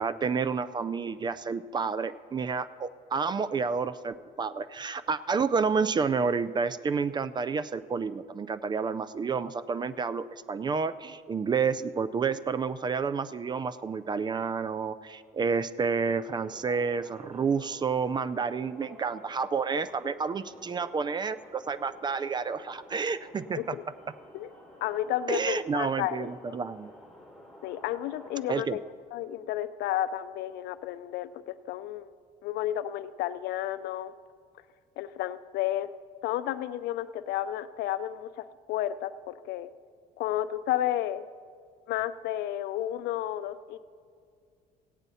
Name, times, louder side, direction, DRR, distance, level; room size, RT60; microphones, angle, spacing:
voice 1, 0.0-23.8 25.3-26.9 28.5-28.8, right 5 dB, 25° right, 15 dB, 0.3 m, -30 dB
sound 1, 15.8-28.4, left 1 dB, ahead, 2.8 m, -51 dB
voice 2, 19.7-20.1 23.6-23.8 24.3-24.5 24.8-26.6 27.6-28.8 29.1-32.1 32.4-34.1 35.0-35.9 36.2-39.7 40.2-41.3 41.9-43.8, left 12 dB, 75° left, 13 dB, 0.4 m, -32 dB
16.0 x 8.9 x 4.1 m, 2.1 s
cardioid pair, 110°, 17 cm